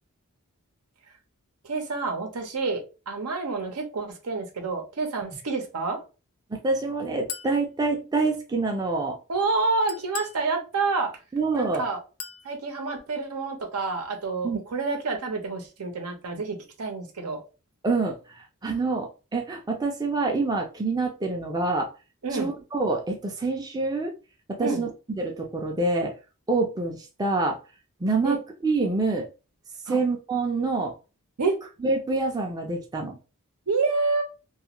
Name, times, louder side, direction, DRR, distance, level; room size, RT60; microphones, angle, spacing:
voice 1, 1.6-6.0 9.3-11.1 11.5-12.0 12.4-17.4 22.2-22.5 24.6-24.8 28.2-28.4 29.9-30.0 31.4-31.6 33.7-34.2, right 3 dB, 85° right, 0.7 m, -28 dB
voice 2, 6.5-9.2 11.3-11.9 14.4-14.6 17.8-21.9 22.3-24.1 24.5-26.2 26.5-27.6 28.0-29.3 29.9-30.9 31.8-33.2, right 3 dB, 20° right, 0.4 m, -26 dB
Chink clink, 7.3-7.6 9.9-10.4 12.2-12.5, left 8 dB, 85° left, 0.4 m, -37 dB
2.4 x 2.3 x 2.9 m
head